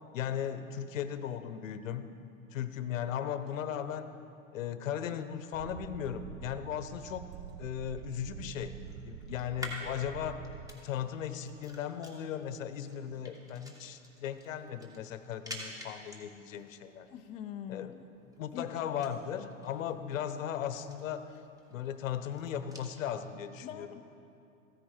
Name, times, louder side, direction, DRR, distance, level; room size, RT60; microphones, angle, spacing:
voice 1, 0.1-2.1 2.5-4.2 4.5-7.3 7.6-8.7 9.0-10.4 10.7-17.1 17.7-17.9 18.4-21.4 21.7-23.9, left 9 dB, 70° left, 11 dB, 0.8 m, -37 dB
sound 1, 5.5-10.7, right 11 dB, 55° right, 0.5 m, -47 dB
sound 2, 7.1-22.9, equal, 10° right, 1.7 m, -51 dB
voice 2, 17.1-18.1 18.5-18.7 23.6-24.0, left 10 dB, 20° left, 6 dB, 0.4 m, -43 dB
14.5 x 10.0 x 4.5 m, 2.6 s
hypercardioid pair, 100°, 41 cm